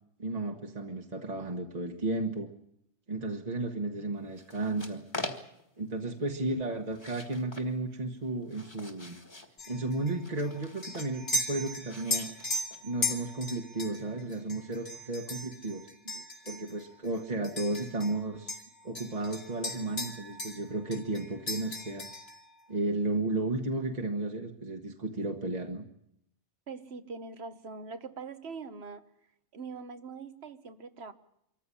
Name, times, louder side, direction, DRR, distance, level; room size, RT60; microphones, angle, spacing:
voice 1, 0.2-2.5 3.1-5.0 5.8-9.2 9.7-12.3 12.8-15.9 16.1-18.6 18.8-22.1 22.7-25.8, right 2 dB, 40° right, 3 dB, 1.5 m, -33 dB
sound 1, 4.3-5.8 6.9-7.7 8.2-9.6 10.2-11.2 11.8-13.1, left 1 dB, 25° left, 1.9 m, -43 dB
sound 2, 9.6-18.2 18.5-20.7 20.9-22.4, left 2 dB, 65° left, 2.9 m, -37 dB
voice 2, 26.7-29.0 29.5-31.1, right 4 dB, 70° right, 10 dB, 1.4 m, -42 dB
24.5 x 14.5 x 9.8 m, 0.78 s
omnidirectional pair, 1.1 m